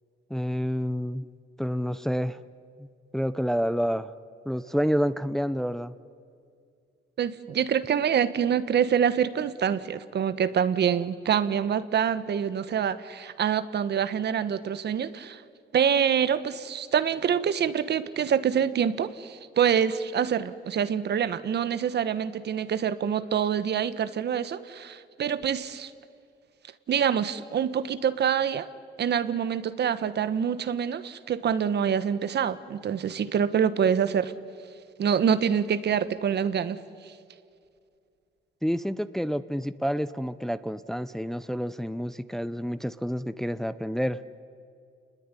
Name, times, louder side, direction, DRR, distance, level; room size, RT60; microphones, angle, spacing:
voice 1, 0.3-1.3 1.6-2.4 2.8-2.9 3.1-4.1 4.5-5.9 38.6-44.2, equal, ahead, 13 dB, 0.7 m, -28 dB
voice 2, 7.2-15.4 15.7-25.9 26.9-28.7 29.0-34.3 35.0-36.8, right 8 dB, 60° right, 13 dB, 1.3 m, -26 dB
29.5 x 20.5 x 9.9 m, 2.4 s
cardioid pair, 90°, 20 cm